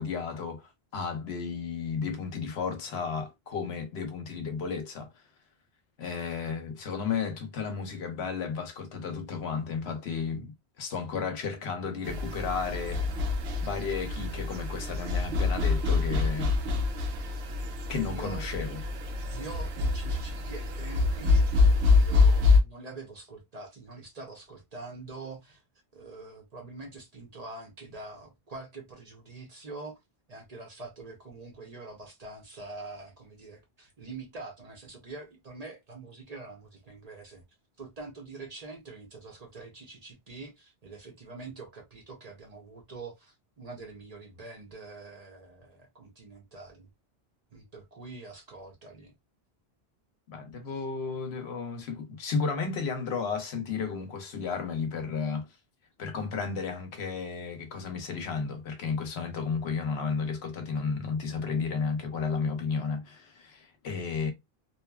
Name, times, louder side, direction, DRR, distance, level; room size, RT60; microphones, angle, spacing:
voice 1, 0.0-5.1 6.0-13.1 13.6-16.5 17.9-18.8 50.3-55.5 56.0-64.3, left 5 dB, 80° left, 1.0 m, -33 dB
sound 1, 12.1-22.6, left 3 dB, 80° right, 0.8 m, -26 dB
voice 2, 18.0-18.5 19.2-21.4 21.9-25.6 25.9-30.0 30.3-37.4 37.8-46.9 47.5-49.1 50.6-50.8, right 3 dB, 45° right, 0.7 m, -45 dB
2.8 x 2.3 x 2.2 m
omnidirectional pair, 1.1 m